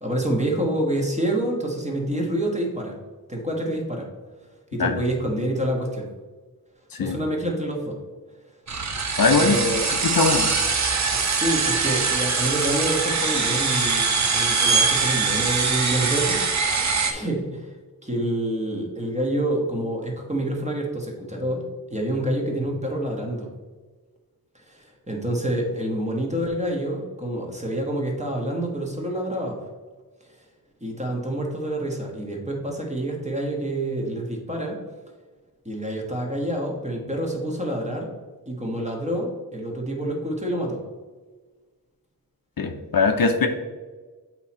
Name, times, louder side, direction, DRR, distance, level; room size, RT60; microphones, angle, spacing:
voice 1, 0.0-3.0 3.3-4.1 4.7-6.1 7.0-8.0 9.4-9.9 11.1-16.4 17.1-17.8 18.0-21.6 21.9-23.5 24.5-29.6 30.8-34.8 35.6-38.1 38.5-40.8, right 1 dB, 20° right, 0 dB, 1.3 m, -27 dB
sound 1, 8.7-17.1, right 4 dB, 50° right, 0.7 m, -23 dB
voice 2, 9.2-9.6 10.0-10.5 42.6-43.5, left 4 dB, 65° left, 6 dB, 0.6 m, -20 dB
8.0 x 3.0 x 4.2 m, 1.3 s
wide cardioid pair, 85°, 37 cm